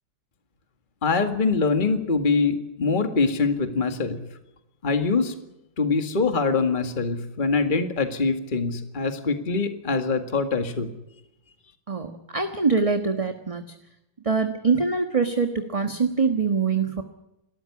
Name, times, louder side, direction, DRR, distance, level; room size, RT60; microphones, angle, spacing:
voice 1, 1.0-4.2 4.8-5.3 5.8-10.9, left 4 dB, 25° left, 7 dB, 2.1 m, -24 dB
voice 2, 11.9-13.7 14.2-17.0, right 4 dB, 20° right, 6 dB, 1.3 m, -24 dB
30.0 x 14.0 x 9.8 m, 0.89 s
omnidirectional pair, 2.1 m